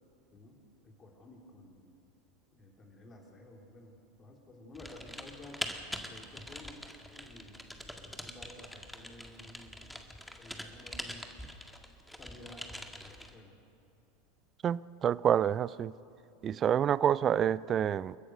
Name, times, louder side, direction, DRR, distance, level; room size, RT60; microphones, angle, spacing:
voice 1, 0.8-1.9 2.5-5.6 6.1-6.8 7.1-10.1 10.4-11.3 12.2-13.6, left 1 dB, 25° left, 1 dB, 4.0 m, -53 dB
Typing, 4.7-13.3, equal, 5° left, 1.9 m, -44 dB
voice 2, 14.6-15.9 16.4-18.2, right 9 dB, 30° right, 20 dB, 0.4 m, -28 dB
29.5 x 14.0 x 6.6 m, 2.8 s
figure-of-eight pair, 80°, 0 cm